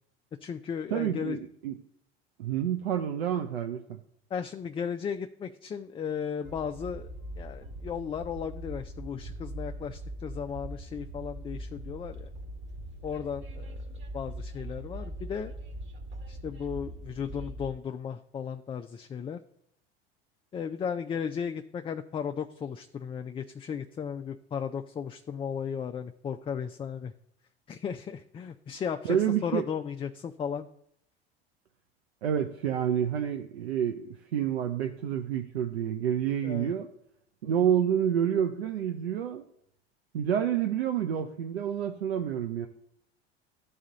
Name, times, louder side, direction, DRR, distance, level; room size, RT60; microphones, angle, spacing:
voice 1, 0.4-1.4 4.3-12.3 13.0-13.8 14.1-15.5 16.3-19.4 20.5-27.1 27.7-30.7 36.4-36.7, left 7 dB, 20° left, 7 dB, 0.3 m, -35 dB
voice 2, 0.9-1.7 2.4-4.0 29.0-29.6 32.2-34.0 34.3-36.9 37.4-39.4 40.1-42.7, right 9 dB, 85° right, 5 dB, 0.6 m, -28 dB
Train, 6.4-17.7, right 1 dB, 35° right, 1.5 m, -41 dB
12.5 x 4.2 x 3.8 m, 0.72 s
hypercardioid pair, 70°, 31 cm